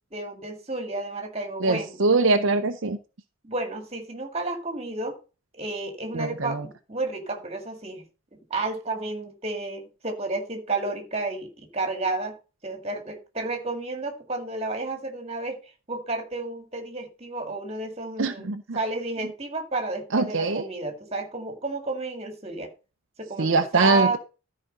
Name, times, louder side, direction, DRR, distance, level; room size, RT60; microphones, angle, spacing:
voice 1, 0.1-2.0 3.4-5.2 5.5-8.0 8.5-12.3 12.6-15.6 15.9-18.5 18.7-22.7 23.2-24.2, right 3 dB, 30° right, 5 dB, 2.0 m, -31 dB
voice 2, 1.6-3.0 6.1-6.6 18.2-18.8 20.1-20.7 23.4-24.2, right 3 dB, 60° right, 7 dB, 0.7 m, -23 dB
13.0 x 5.0 x 5.3 m, 0.32 s
head